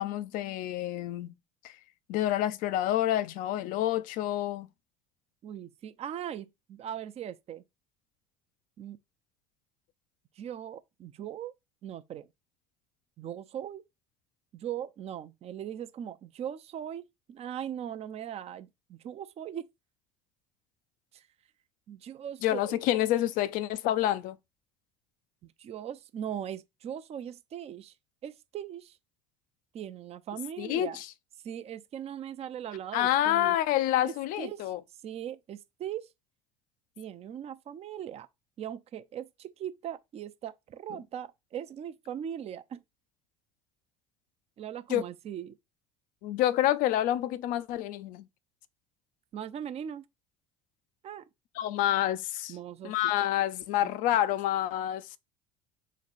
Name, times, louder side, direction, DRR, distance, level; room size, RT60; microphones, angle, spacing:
voice 1, 0.0-1.3 1.6-1.7 2.1-4.7 22.4-24.4 30.6-31.1 32.9-34.8 44.9-45.0 46.2-48.3 51.6-52.6 52.8-55.2, left 13 dB, 60° left, 0.5 m, -28 dB
voice 2, 5.4-7.6 8.8-9.0 10.4-11.5 11.8-12.3 13.2-13.8 14.5-19.7 21.1-21.2 21.9-22.8 25.6-27.9 28.2-28.9 29.7-31.0 31.4-33.6 34.0-34.6 35.0-36.1 37.0-38.3 38.6-42.8 44.6-45.6 49.3-50.0 51.0-51.2 52.5-52.9 53.8-53.9, right 9 dB, 40° right, 0.5 m, -39 dB
3.5 x 3.2 x 4.1 m
hypercardioid pair, 70°, 16 cm